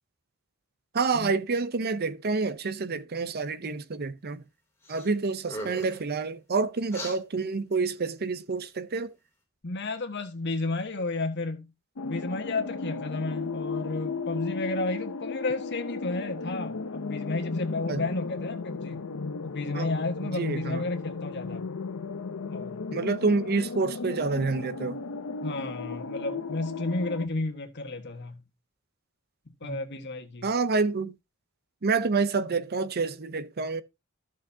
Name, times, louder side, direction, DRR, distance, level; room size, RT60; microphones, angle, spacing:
voice 1, 0.9-4.4 4.9-9.1 17.9-18.0 19.7-19.9 20.2-20.8 22.9-25.0 29.6-29.8 30.4-31.1 31.8-33.8, right 4 dB, 50° right, 0.7 m, -28 dB
sound 1, 4.8-5.1 5.4-6.0 6.9-7.2, equal, 15° left, 3.0 m, -38 dB
voice 2, 9.6-11.7 12.0-19.0 19.4-21.6 22.5-22.8 25.4-28.4 29.6-30.5, left 2 dB, 55° left, 1.5 m, -32 dB
sound 2, 12.0-27.3, left 4 dB, 85° left, 0.7 m, -35 dB
13.5 x 6.3 x 2.8 m
head